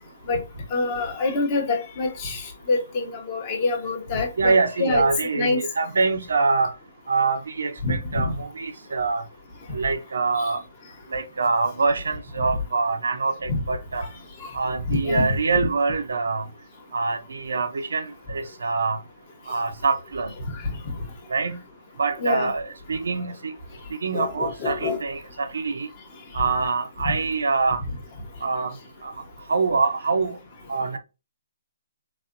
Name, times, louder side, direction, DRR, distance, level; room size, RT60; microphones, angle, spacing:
voice 1, 0.7-5.0 5.3-5.6 7.8-8.3 10.4-10.5 13.5-13.6 14.0-14.1 14.4-14.5 14.9-15.4 20.5-20.7 22.2-22.5 24.1-25.0, left 3 dB, 25° left, 0.8 m, -26 dB
voice 2, 4.4-6.7 7.1-9.2 9.7-10.6 11.1-14.1 14.5-16.5 16.9-19.0 19.5-20.3 21.3-21.6 22.0-23.5 23.9-25.9 26.3-27.8 28.4-28.7 29.0-29.1 29.5-30.3 30.7-31.0, right 4 dB, 80° right, 0.6 m, -24 dB
4.1 x 2.2 x 2.5 m
hypercardioid pair, 170°, 0 cm